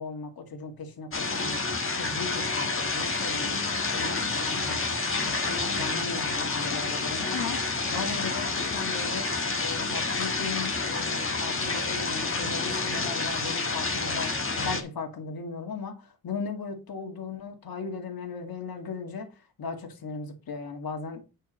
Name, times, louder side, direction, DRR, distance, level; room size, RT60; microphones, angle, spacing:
voice 1, 0.0-1.6 1.9-3.6 3.9-14.3 14.6-21.2, left 4 dB, 75° left, 2.3 m, -37 dB
sound 1, 1.1-14.8, left 3 dB, 35° left, 1.5 m, -29 dB
9.2 x 4.7 x 5.3 m
wide cardioid pair, 145°, 37 cm